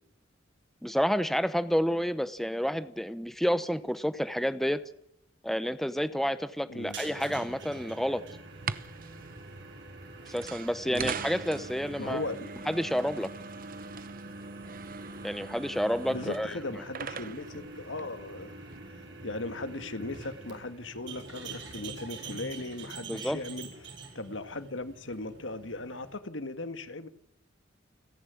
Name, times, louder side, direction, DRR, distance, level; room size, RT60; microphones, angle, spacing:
voice 1, 0.8-4.8 5.4-8.2 10.3-12.2 12.7-13.3 15.2-16.5 23.1-23.4, equal, ahead, 13 dB, 0.9 m, -29 dB
sound 1, 6.8-26.2, right 3 dB, 65° right, 5.6 m, -46 dB
sound 2, 8.5-18.8, right 5 dB, 50° right, 1.0 m, -42 dB
voice 2, 12.0-12.5 16.1-18.6 19.2-27.1, left 2 dB, 80° left, 10 dB, 1.9 m, -38 dB
29.5 x 11.0 x 9.5 m, 0.75 s
head